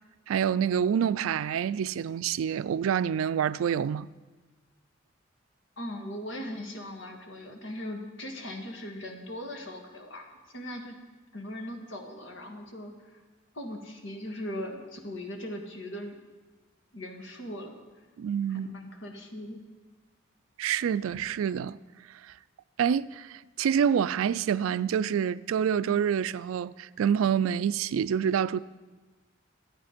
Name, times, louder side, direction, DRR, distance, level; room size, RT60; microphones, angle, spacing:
voice 1, 0.3-4.1 18.2-18.7 20.6-21.8 22.8-28.6, right 8 dB, 90° right, 0.3 m, -27 dB
voice 2, 5.8-11.0 11.3-13.2 13.5-16.2 16.9-17.7 18.5-19.6, left 1 dB, 65° left, 1.6 m, -39 dB
12.0 x 8.7 x 5.1 m
head